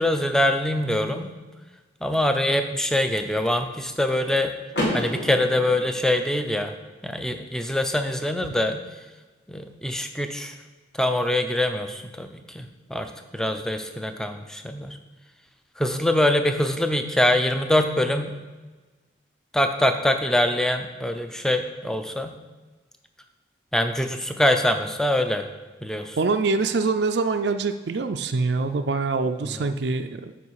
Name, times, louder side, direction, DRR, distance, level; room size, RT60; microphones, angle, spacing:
voice 1, 0.0-1.4 2.0-4.6 4.9-6.7 7.0-8.8 9.5-10.5 10.9-15.0 15.8-18.3 19.5-22.3 23.7-25.4 25.8-26.2 29.5-29.7, left 1 dB, 5° left, 7 dB, 0.5 m, -24 dB
Car / Door, 4.7-6.7, left 1 dB, 60° left, 2.2 m, -30 dB
voice 2, 26.2-30.3, right 4 dB, 65° right, 7 dB, 0.4 m, -24 dB
9.8 x 5.9 x 4.7 m, 1.3 s
head